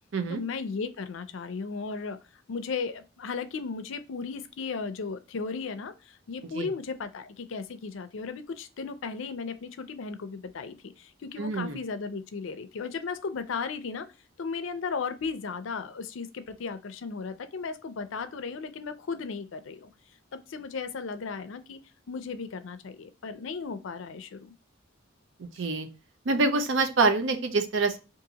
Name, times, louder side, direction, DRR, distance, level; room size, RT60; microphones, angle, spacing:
voice 1, 0.3-14.1 14.4-19.9 20.3-21.8 22.1-24.5, left 5 dB, 70° left, 10 dB, 0.4 m, -35 dB
voice 2, 11.4-11.8 25.4-25.9 26.3-28.0, right 3 dB, 70° right, 8 dB, 0.5 m, -26 dB
2.8 x 2.5 x 3.7 m, 0.31 s
head